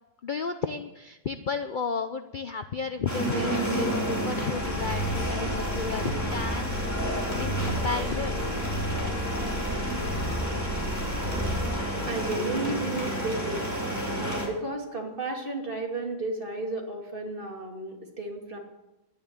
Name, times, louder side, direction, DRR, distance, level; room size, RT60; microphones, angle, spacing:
voice 1, 0.2-8.4, left 5 dB, 65° left, 8 dB, 0.5 m, -33 dB
sound 1, 3.1-14.5, right 1 dB, 10° left, 3.8 m, -30 dB
Purr, 4.5-12.6, equal, 30° left, 5.8 m, -33 dB
voice 2, 12.1-13.6 14.2-18.6, right 2 dB, 30° right, 0 dB, 2.7 m, -33 dB
12.0 x 10.5 x 8.8 m, 0.98 s
omnidirectional pair, 1.7 m